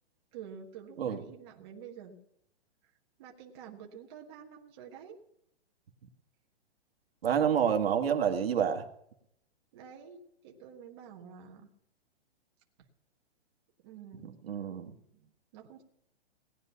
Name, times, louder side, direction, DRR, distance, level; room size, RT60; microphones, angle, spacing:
voice 1, 0.3-2.2 3.2-5.2 9.7-11.7 13.8-15.8, right 7 dB, 25° right, 0 dB, 1.3 m, -49 dB
voice 2, 7.2-8.9 14.2-14.9, right 8 dB, 65° right, 6 dB, 1.6 m, -28 dB
18.0 x 9.9 x 5.7 m, 0.75 s
hypercardioid pair, 175°, 32 cm